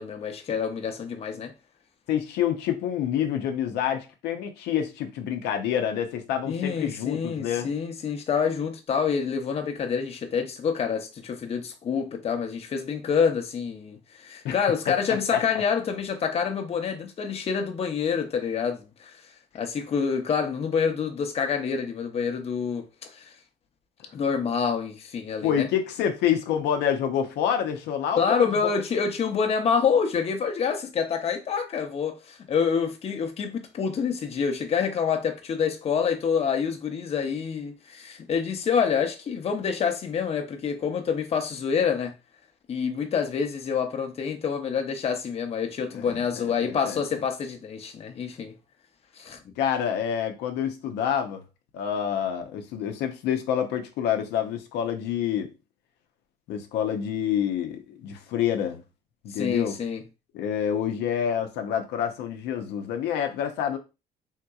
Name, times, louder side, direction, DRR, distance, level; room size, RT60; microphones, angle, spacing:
voice 1, 0.0-1.5 6.5-19.1 19.5-23.3 24.1-25.7 28.2-42.1 42.7-48.5 49.2-49.5 59.3-60.0, left 6 dB, 35° left, 0.6 m, -27 dB
voice 2, 2.1-7.7 14.4-14.5 15.3-15.6 25.4-28.7 45.9-47.0 49.6-51.4 51.7-55.5 56.5-58.8 59.2-59.8 60.3-63.8, left 9 dB, 85° left, 0.6 m, -27 dB
3.6 x 2.8 x 2.3 m
cardioid pair, 110°, 17 cm